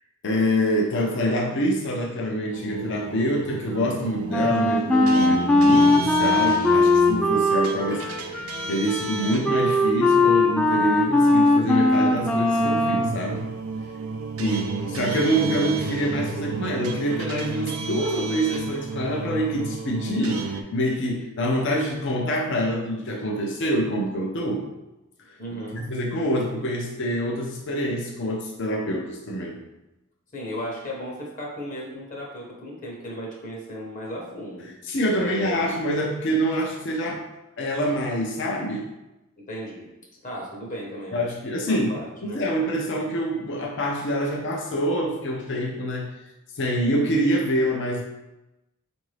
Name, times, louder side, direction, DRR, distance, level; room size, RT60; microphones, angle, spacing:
voice 1, 0.2-13.4 14.4-24.6 25.3-29.6 34.8-37.2 37.6-38.9 41.1-46.1 46.5-48.0, equal, 60° left, 0 dB, 0.5 m, -26 dB
sound 1, 2.5-20.6, right 4 dB, 85° right, 0.4 m, -33 dB
Wind instrument woodwind instrument, 4.3-13.2, left 2 dB, 5° left, 0.3 m, -20 dB
voice 2, 25.4-25.9 30.3-34.7 35.1-35.6 39.5-39.9 40.2-42.4, equal, 40° left, -2 dB, 0.8 m, -35 dB
4.6 x 2.6 x 3.2 m, 0.96 s
head